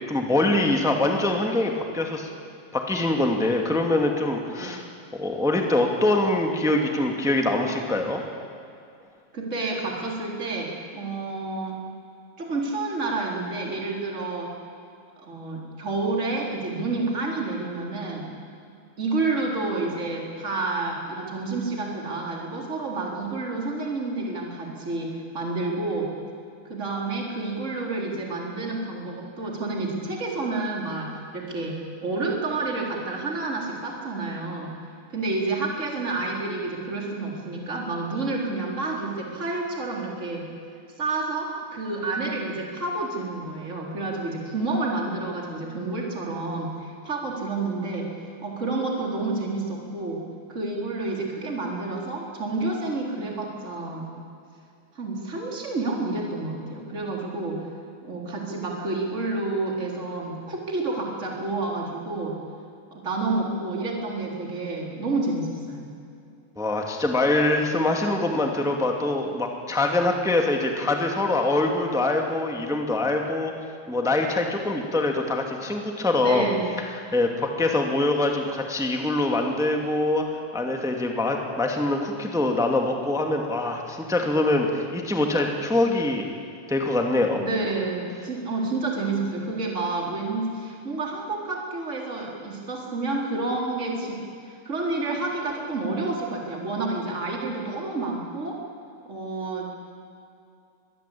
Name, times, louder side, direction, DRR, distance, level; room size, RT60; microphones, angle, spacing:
voice 1, 0.1-2.3 2.7-4.8 5.2-8.2 66.6-73.5 73.9-76.5 77.1-80.2 80.5-86.3 86.7-87.4, left 2 dB, ahead, 2 dB, 1.9 m, -24 dB
voice 2, 9.3-11.8 12.4-14.5 15.2-18.3 19.0-26.1 26.7-34.8 35.1-40.5 41.0-48.1 48.4-50.2 50.5-54.2 54.9-57.6 58.0-62.4 62.9-65.9 76.2-76.7 87.4-94.2 94.4-98.6 99.1-99.7, right 3 dB, 20° right, -1 dB, 4.2 m, -29 dB
25.5 x 20.5 x 8.7 m, 2.5 s
omnidirectional pair, 3.6 m